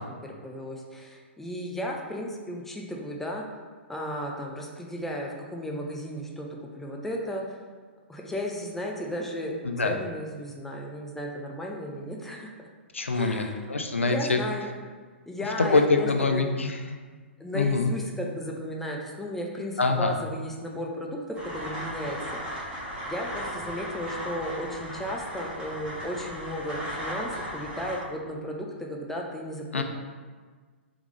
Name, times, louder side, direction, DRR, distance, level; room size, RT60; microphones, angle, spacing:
voice 1, 0.2-3.4 3.9-6.5 6.7-7.4 8.1-9.5 9.8-12.5 13.1-13.5 14.0-14.7 15.3-16.4 17.4-22.2 22.5-22.8 23.1-29.8, equal, 5° left, -1 dB, 0.4 m, -34 dB
voice 2, 9.6-10.0 12.9-14.4 15.7-16.8 17.5-17.9 19.8-20.1 29.7-29.8, left 3 dB, 80° left, 5 dB, 0.4 m, -24 dB
sound 1, 21.3-28.0, equal, 15° right, 1.3 m, -36 dB
3.6 x 3.0 x 3.5 m, 1.5 s
figure-of-eight pair, 115°, 7 cm